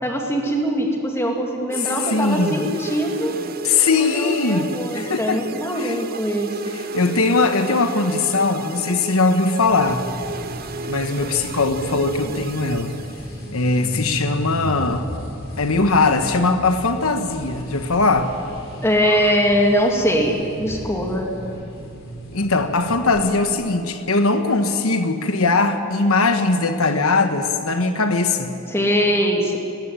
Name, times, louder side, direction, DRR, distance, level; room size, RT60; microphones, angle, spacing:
voice 1, 0.0-3.4 4.0-6.6 18.8-21.3 28.7-29.6, equal, 10° left, 1 dB, 2.5 m, -22 dB
sound 1, 1.7-13.5, right 4 dB, 45° right, 0.8 m, -33 dB
voice 2, 2.1-2.6 3.6-4.7 4.9-5.4 5.8-6.0 6.9-10.0 10.9-13.0 13.5-15.1 15.6-18.3 22.3-28.5, left 3 dB, 80° left, 7 dB, 1.3 m, -20 dB
sound 2, 9.6-23.2, equal, 60° left, 4.4 m, -36 dB
20.0 x 16.0 x 9.2 m, 2.7 s
head